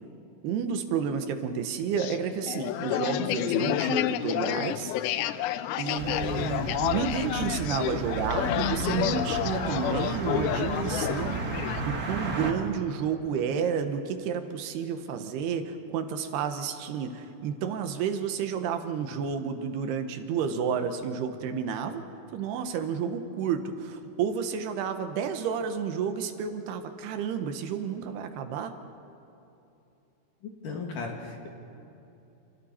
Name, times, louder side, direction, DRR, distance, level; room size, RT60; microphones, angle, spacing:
voice 1, 0.4-4.9 5.8-22.0 22.3-28.7, right 7 dB, 75° right, 7 dB, 3.0 m, -31 dB
sound 1, 2.0-11.8, left 12 dB, 80° left, 2.3 m, -30 dB
sound 2, 6.0-12.5, right 3 dB, 45° right, 1.2 m, -34 dB
voice 2, 30.4-31.5, left 4 dB, 55° left, 1 dB, 3.4 m, -36 dB
29.5 x 28.0 x 4.3 m, 2.9 s
omnidirectional pair, 4.8 m